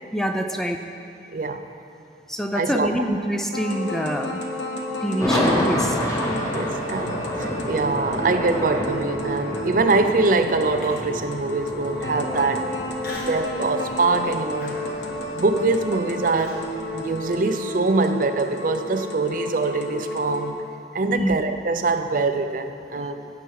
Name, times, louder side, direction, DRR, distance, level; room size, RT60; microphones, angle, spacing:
voice 1, 0.1-0.8 2.3-4.4 5.0-6.0 21.1-21.4, equal, ahead, 4 dB, 0.4 m, -25 dB
voice 2, 1.3-1.7 2.6-2.9 6.5-12.6 13.3-14.8 15.3-16.6 16.9-20.6 20.9-23.3, right 3 dB, 50° right, 8 dB, 0.5 m, -23 dB
sound 1, 3.5-20.5, left 1 dB, 85° left, 1.2 m, -32 dB
sound 2, 5.2-17.4, left 1 dB, 20° left, 1.3 m, -29 dB
Human voice, 10.8-11.3 11.8-11.9 13.0-13.5 13.9-14.2 14.6-16.7, left 1 dB, 55° left, 1.6 m, -40 dB
15.5 x 6.8 x 4.7 m, 2.5 s
head